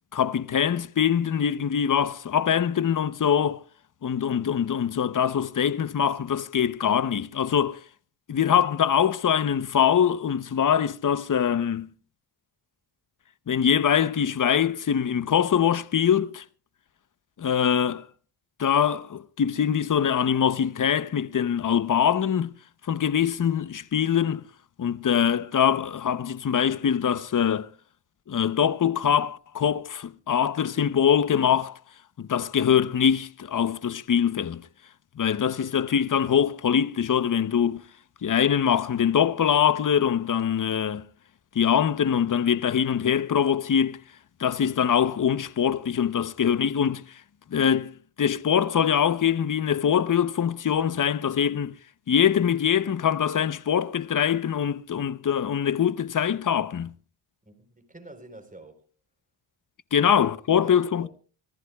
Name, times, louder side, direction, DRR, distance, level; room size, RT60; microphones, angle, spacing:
voice 1, 0.1-3.6 4.0-7.8 8.3-11.9 13.5-16.4 17.4-18.0 18.6-22.5 22.9-24.4 24.8-27.7 28.3-31.8 32.2-34.6 35.2-37.8 38.2-41.0 41.5-44.0 44.4-47.0 47.5-51.7 52.1-56.9 59.9-61.1, left 8 dB, 40° left, 0.9 m, -23 dB
voice 2, 57.4-58.8 60.0-60.1 60.5-61.1, right 2 dB, 15° right, 4.1 m, -47 dB
25.5 x 14.5 x 2.4 m
cardioid pair, 65°, 47 cm